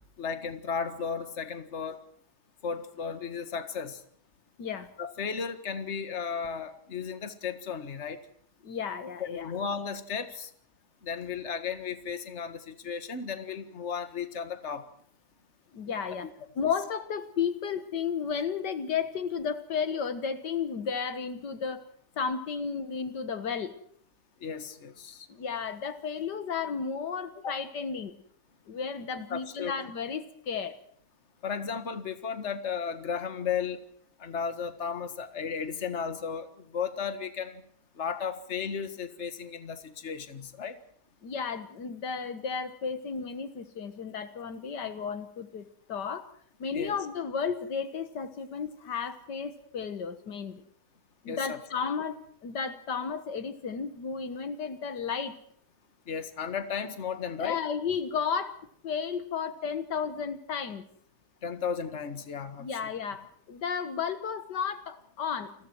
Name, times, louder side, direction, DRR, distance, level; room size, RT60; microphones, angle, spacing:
voice 1, 0.2-2.0 2.6-4.0 5.0-8.2 9.3-10.5 11.0-14.8 24.4-25.3 29.3-29.7 31.4-33.8 34.2-37.6 38.0-40.8 46.7-47.0 51.3-51.6 56.1-57.6 61.4-62.7, left 6 dB, 40° left, 10 dB, 1.9 m, -34 dB
voice 2, 4.6-4.9 8.6-9.5 15.7-16.3 16.6-21.8 22.2-23.8 25.3-28.1 28.7-30.8 41.2-46.3 46.6-50.6 51.2-55.4 57.4-58.6 58.8-60.9 62.6-65.5, left 6 dB, 75° left, 11 dB, 2.0 m, -33 dB
29.5 x 21.5 x 4.6 m, 0.65 s
omnidirectional pair, 1.9 m